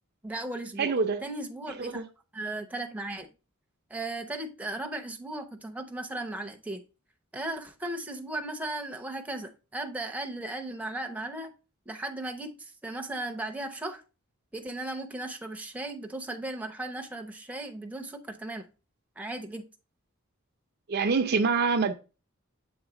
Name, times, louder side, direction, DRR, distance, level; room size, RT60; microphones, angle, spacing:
voice 1, 0.2-0.9 1.2-2.0 2.3-3.3 3.9-6.8 7.3-11.5 11.9-14.0 14.5-18.7 19.2-19.7, right 2 dB, 5° right, 0.7 m, -36 dB
voice 2, 0.8-1.2 1.8-2.0 20.9-21.9, right 4 dB, 50° right, 0.5 m, -25 dB
7.2 x 3.7 x 3.7 m
head